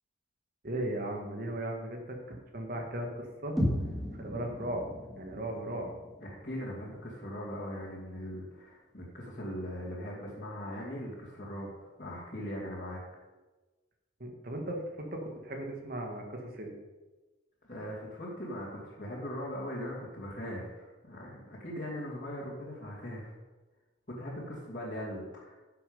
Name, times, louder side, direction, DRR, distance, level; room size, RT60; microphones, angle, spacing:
voice 1, 0.6-3.6 4.2-4.9 5.2-5.9 14.2-16.7, right 1 dB, 45° right, 2 dB, 1.8 m, -37 dB
sound 1, 3.6-7.5, equal, ahead, 2.0 m, -36 dB
voice 2, 6.2-13.0 17.6-23.3 24.1-25.6, equal, 40° left, -8 dB, 2.7 m, -40 dB
11.0 x 7.1 x 5.5 m, 1.2 s
head